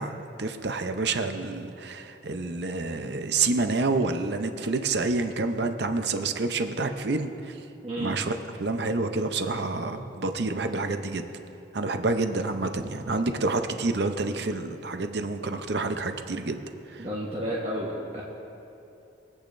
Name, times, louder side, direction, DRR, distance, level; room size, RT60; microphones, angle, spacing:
voice 1, 0.0-7.6 8.0-11.3 11.7-16.6 16.9-17.0, right 3 dB, 60° right, 7 dB, 0.6 m, -28 dB
voice 2, 7.8-8.2 17.0-18.2, equal, 30° right, -6 dB, 1.2 m, -31 dB
22.5 x 8.5 x 2.6 m, 2.8 s
head